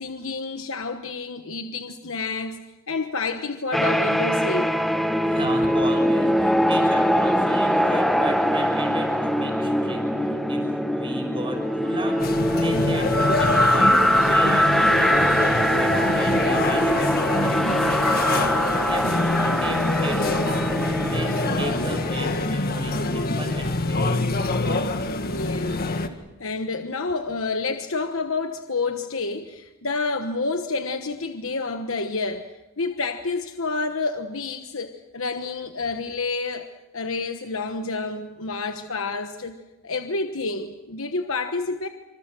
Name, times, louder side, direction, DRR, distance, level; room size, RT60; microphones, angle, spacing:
voice 1, 0.0-4.7 25.2-41.9, left 3 dB, 65° left, 6 dB, 1.2 m, -29 dB
sound 1, 3.7-22.1, equal, ahead, 1.0 m, -22 dB
voice 2, 5.2-13.1 13.3-17.5 17.8-18.5 18.9-24.2, right 1 dB, 25° right, 3 dB, 6.2 m, -35 dB
sound 2, 12.2-26.1, left 2 dB, 45° left, 1.7 m, -25 dB
27.0 x 26.5 x 6.3 m, 1.1 s
head